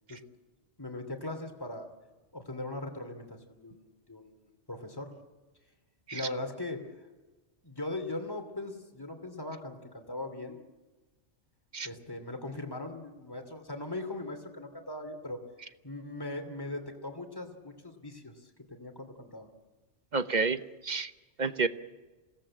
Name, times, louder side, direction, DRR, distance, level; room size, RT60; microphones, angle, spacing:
voice 1, 0.8-1.9 2.3-5.1 6.1-6.9 7.6-10.6 11.8-15.4 15.8-19.5, left 2 dB, 20° left, 5 dB, 2.8 m, -40 dB
voice 2, 20.1-21.1 21.4-21.7, right 4 dB, 40° right, 11 dB, 1.1 m, -29 dB
27.5 x 18.0 x 8.8 m, 1.2 s
omnidirectional pair, 1.2 m